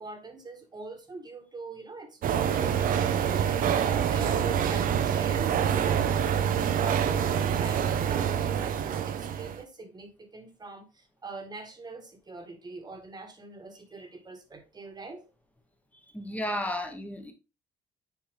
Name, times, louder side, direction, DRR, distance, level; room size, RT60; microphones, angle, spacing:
voice 1, 0.0-15.2, right 3 dB, 25° right, 1.6 m, -44 dB
sound 1, 2.2-9.6, right 8 dB, 55° right, 0.8 m, -26 dB
voice 2, 16.1-17.3, left 1 dB, 10° left, 1.3 m, -33 dB
7.1 x 4.5 x 3.5 m
cardioid pair, 110°, 17 cm